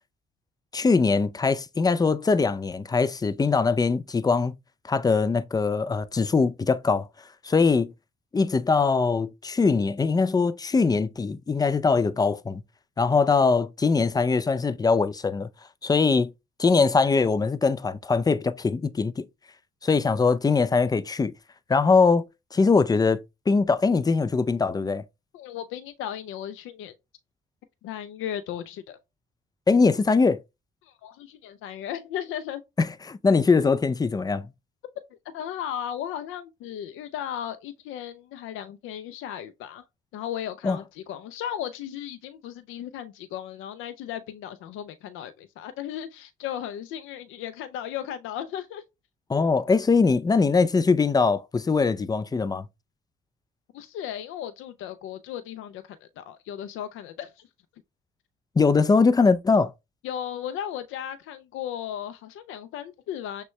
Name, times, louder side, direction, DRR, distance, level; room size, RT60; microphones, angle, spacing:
voice 1, 0.7-4.6 4.9-7.1 7.4-7.9 8.3-12.6 13.0-15.5 15.8-16.3 16.6-19.2 19.8-21.3 21.7-22.3 22.5-23.2 23.5-25.0 29.7-30.4 32.8-34.5 40.6-40.8 49.3-52.7 58.6-59.7, left 4 dB, 20° left, 0.4 m, -22 dB
voice 2, 25.3-26.9 27.8-29.0 30.8-32.6 35.3-39.8 40.1-48.8 53.7-57.5 60.0-63.4, left 10 dB, 85° left, 0.4 m, -35 dB
6.2 x 2.2 x 3.1 m
cardioid pair, 90°, 20 cm